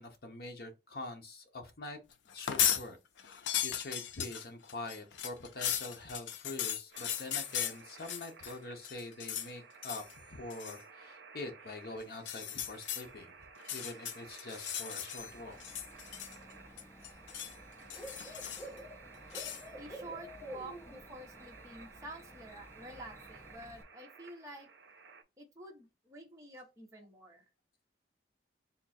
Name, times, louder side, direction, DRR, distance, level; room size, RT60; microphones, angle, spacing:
voice 1, 0.0-2.0 2.3-3.0 3.2-13.3 13.7-15.6, left 2 dB, 60° left, 0.8 m, -45 dB
sound 1, 2.3-2.8 3.2-8.5 8.8-9.5 9.8-10.1 10.5-10.8 12.1-13.0 13.6-15.3 15.6-16.5 16.8-17.5 17.9-18.8 19.3-19.6, left 10 dB, 90° left, 0.4 m, -36 dB
sound 2, 6.9-25.2, right 5 dB, 80° right, 0.6 m, -55 dB
Bird / Cricket, 15.2-23.8, equal, 15° left, 0.6 m, -51 dB
voice 2, 19.8-24.7 25.4-27.4, right 2 dB, 20° right, 0.9 m, -49 dB
3.6 x 2.3 x 4.2 m
head